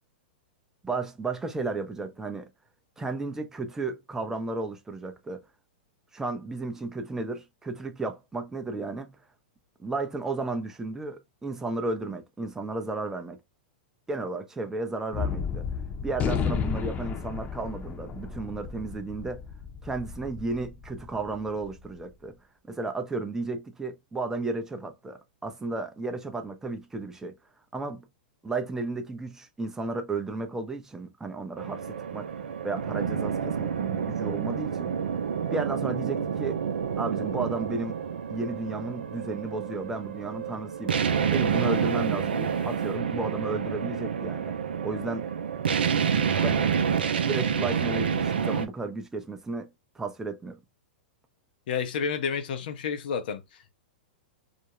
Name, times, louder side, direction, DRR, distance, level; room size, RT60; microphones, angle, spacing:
voice 1, 0.8-2.5 3.0-5.4 6.1-9.2 9.8-13.4 14.1-15.7 16.0-19.4 19.8-22.3 22.7-27.3 27.7-28.1 28.4-34.9 35.5-36.6 37.0-38.0 38.3-41.0 41.3-44.5 44.8-45.3 46.4-46.6 47.2-49.7 50.0-50.6, right 3 dB, 10° right, 0.4 m, -33 dB
Gunshot gunfire, 15.1-21.7, left 6 dB, 30° left, 0.7 m, -33 dB
sound 1, 31.6-48.7, right 7 dB, 80° right, 0.4 m, -28 dB
voice 2, 51.7-53.7, left 6 dB, 65° left, 0.6 m, -30 dB
2.4 x 2.1 x 2.9 m
hypercardioid pair, 110°, 5 cm